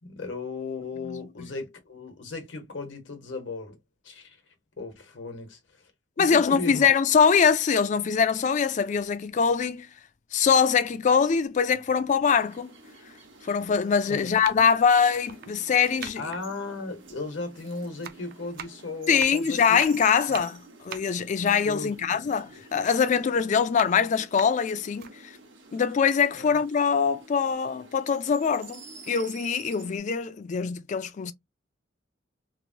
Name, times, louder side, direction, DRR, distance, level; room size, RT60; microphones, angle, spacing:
voice 1, 0.0-3.8 4.0-4.4 4.8-5.9 6.2-6.9 14.1-14.3 14.6-14.7 16.2-19.8 20.3-20.4 21.6-22.0 26.3-26.6, left 3 dB, 75° left, 1.0 m, -36 dB
voice 2, 6.2-9.9 10.3-12.7 13.4-16.2 19.1-25.1 25.7-31.3, left 6 dB, 40° left, 0.3 m, -23 dB
sound 1, 11.4-11.5 12.4-12.5 13.5-13.7 14.2-17.6 17.8-22.4 22.8-25.1 25.6-25.7 26.0-27.0 27.3-27.5, right 8 dB, 55° right, 0.4 m, -44 dB
sound 2, 12.3-30.0, right 4 dB, 85° right, 1.0 m, -49 dB
3.0 x 2.1 x 2.6 m
head